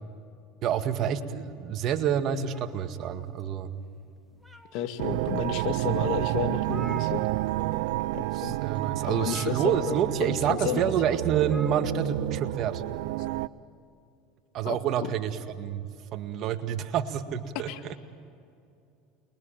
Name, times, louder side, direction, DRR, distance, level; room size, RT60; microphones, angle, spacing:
voice 1, 0.6-3.7 8.4-12.8 14.5-15.8 16.1-17.7, right 9 dB, 50° right, 7 dB, 2.0 m, -28 dB
sound 1, 2.5-3.7 4.2-5.1 5.7-5.8 6.1-6.2 6.4-7.8 8.0-8.3 9.1-10.2 11.4-12.2, equal, ahead, 2.4 m, -48 dB
voice 2, 4.7-7.3 8.1-8.6 9.0-10.9 14.7-15.1 17.7-18.0, left 10 dB, 65° left, 7 dB, 2.2 m, -32 dB
sound 2, 5.0-13.5, right 18 dB, 75° right, 0.6 m, -30 dB
29.5 x 22.5 x 9.0 m, 2.5 s
supercardioid pair, 105°, 0 cm